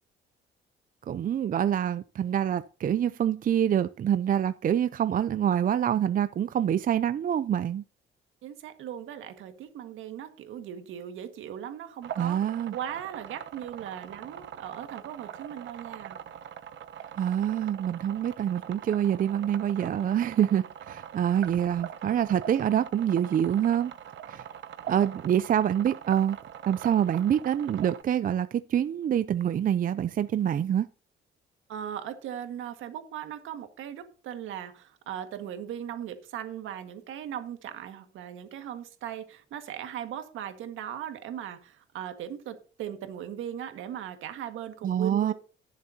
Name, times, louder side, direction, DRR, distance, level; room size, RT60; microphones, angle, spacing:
voice 1, 1.1-7.8 12.2-12.7 17.2-23.9 24.3-24.4 24.9-26.4 26.7-30.9 44.8-45.3, right 9 dB, 45° right, 0.5 m, -26 dB
voice 2, 8.4-12.4 12.7-16.2 31.7-45.3, right 10 dB, 85° right, 1.7 m, -38 dB
sound 1, 12.0-28.0, right 9 dB, 70° right, 1.0 m, -43 dB
18.5 x 7.3 x 2.8 m
cardioid pair, 90°, 20 cm